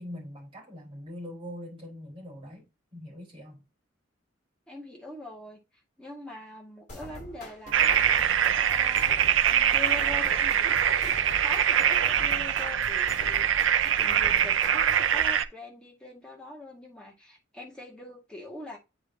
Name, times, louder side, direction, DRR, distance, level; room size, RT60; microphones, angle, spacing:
voice 1, 0.0-3.6, left 1 dB, 30° right, 4.4 m, -42 dB
voice 2, 4.7-5.6 6.0-8.1 8.5-9.2 9.5-18.8, left 2 dB, 5° left, 2.0 m, -43 dB
sound 1, 6.9-15.1, left 1 dB, 40° left, 2.4 m, -44 dB
sound 2, 7.7-15.4, right 9 dB, 75° right, 0.6 m, -23 dB
8.6 x 4.9 x 2.8 m
head